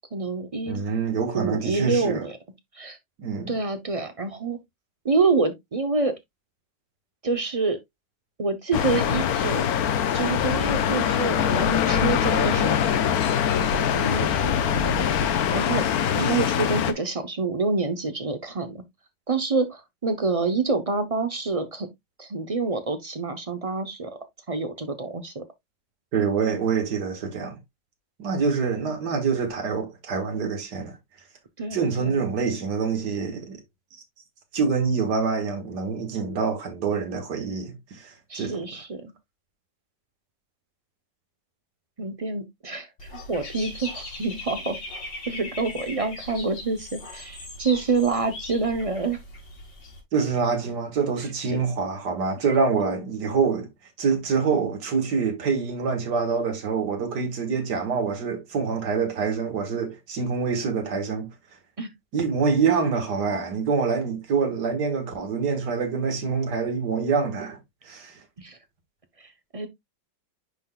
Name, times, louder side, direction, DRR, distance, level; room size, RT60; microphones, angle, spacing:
voice 1, 0.1-0.8 1.3-2.4 2.8-3.0 3.5-4.6 5.0-6.2 7.2-7.8 8.4-9.7 10.1-13.3 13.9-14.9 15.5-15.8 16.1-18.8 19.3-21.9 22.2-24.1 24.5-25.4 31.6-32.2 38.3-39.1 42.0-44.8 45.3-49.2 51.5-51.6 61.8-61.9 68.4-68.6 69.2-69.7, right 3 dB, 40° right, 0.4 m, -27 dB
voice 2, 0.7-2.3 3.2-3.5 26.1-27.6 28.2-31.0 31.7-33.6 34.5-38.7 50.1-53.7 54.0-61.3 62.1-67.6 67.8-68.2, right 5 dB, 65° right, 2.2 m, -26 dB
sound 1, 8.7-16.9, left 8 dB, 65° left, 1.1 m, -23 dB
Dog / Bird, 43.0-50.0, left 2 dB, 85° left, 3.1 m, -39 dB
10.5 x 3.9 x 2.3 m
omnidirectional pair, 2.0 m